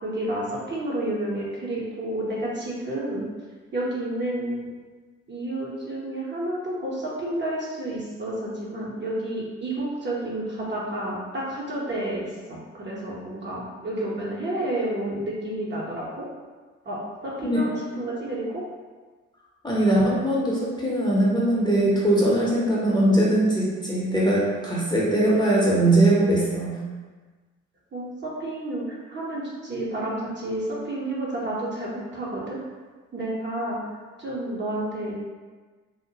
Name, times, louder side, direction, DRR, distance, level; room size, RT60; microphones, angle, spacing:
voice 1, 0.0-3.3 3.7-4.7 5.3-16.3 16.9-18.6 27.9-32.6 33.1-33.8 34.2-35.1, right 1 dB, 30° right, -5 dB, 0.9 m, -30 dB
voice 2, 19.6-26.7, right 1 dB, 10° left, -6 dB, 0.8 m, -21 dB
2.8 x 2.5 x 2.8 m, 1.4 s
figure-of-eight pair, 45°, 36 cm